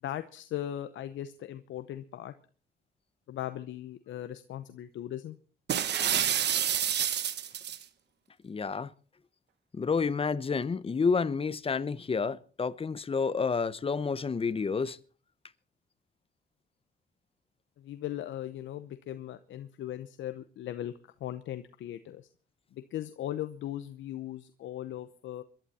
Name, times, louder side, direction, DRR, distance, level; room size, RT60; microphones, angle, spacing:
voice 1, 0.0-2.3 3.3-5.4 17.8-20.9 21.2-22.3 22.7-25.4, left 12 dB, 75° left, 0.8 m, -38 dB
sound 1, 5.7-7.8, right 9 dB, 60° right, 1.1 m, -28 dB
voice 2, 8.4-8.9 9.7-15.0, left 5 dB, 30° left, 0.8 m, -29 dB
22.0 x 11.5 x 4.2 m
cardioid pair, 90°, 20 cm